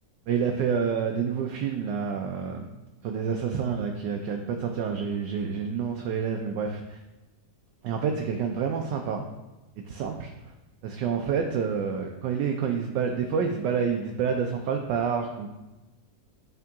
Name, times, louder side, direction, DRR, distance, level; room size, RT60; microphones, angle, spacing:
voice 1, 0.3-2.7 3.0-7.0 7.8-9.2 9.9-10.3 10.8-15.5, right 6 dB, 75° right, 4 dB, 1.2 m, -28 dB
8.3 x 3.7 x 3.6 m, 1.1 s
omnidirectional pair, 1.9 m